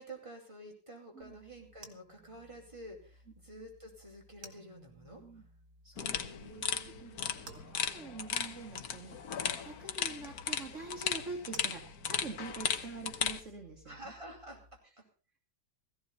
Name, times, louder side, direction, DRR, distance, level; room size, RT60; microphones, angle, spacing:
voice 1, 0.0-5.2 6.1-7.4 13.8-14.6 15.0-15.1, right 1 dB, 20° right, 0 dB, 4.8 m, -50 dB
sound 1, 1.2-14.8, right 3 dB, 80° right, 2.9 m, -58 dB
voice 2, 5.8-6.2 7.0-7.1 7.5-14.1 14.8-14.9, right 3 dB, 45° right, 1 dB, 2.5 m, -45 dB
sound 2, 6.0-13.4, left 7 dB, 65° left, 1.5 m, -36 dB
17.0 x 16.0 x 4.2 m, 0.36 s
omnidirectional pair, 1.7 m